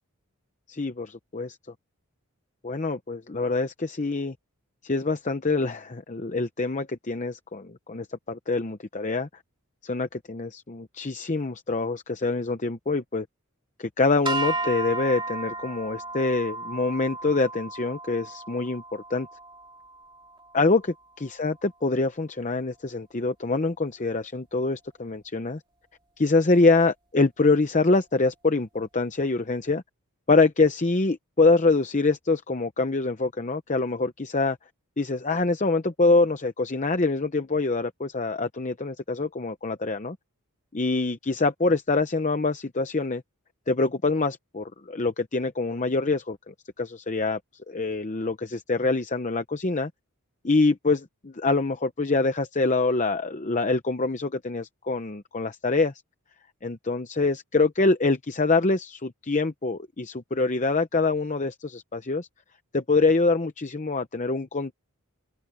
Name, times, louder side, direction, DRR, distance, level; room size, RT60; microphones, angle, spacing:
voice 1, 0.7-1.6 2.6-4.3 4.8-9.3 9.8-13.3 13.8-19.3 20.5-25.6 26.2-29.8 30.3-34.6 35.0-40.2 40.7-43.2 43.7-47.4 47.7-49.9 50.4-55.9 56.6-62.3 62.7-64.7, left 3 dB, 35° left, 0.8 m, -25 dB
sound 1, 14.3-20.6, right 2 dB, 20° right, 2.2 m, -34 dB
open air
head